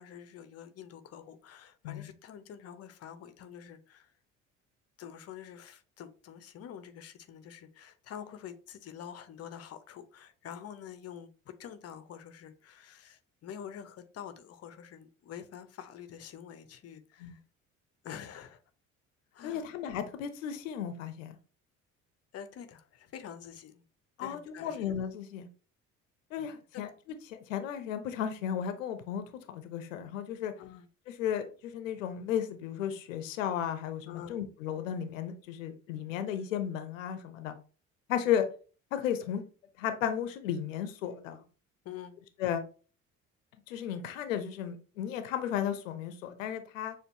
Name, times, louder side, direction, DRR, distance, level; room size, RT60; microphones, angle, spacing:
voice 1, 0.0-4.1 5.0-17.4 18.0-18.6 19.3-19.7 22.3-23.8 24.2-24.8 26.7-26.9 30.6-30.9 34.1-34.3 41.8-42.2, left 9 dB, 40° left, 0.7 m, -47 dB
voice 2, 19.4-21.4 24.2-25.5 26.3-26.9 27.3-30.5 31.2-37.6 38.1-38.4 38.9-39.4 39.8-41.4 42.4-42.6 43.7-46.9, left 9 dB, 70° left, 0.7 m, -34 dB
6.6 x 2.5 x 2.7 m
figure-of-eight pair, 50°, 40 cm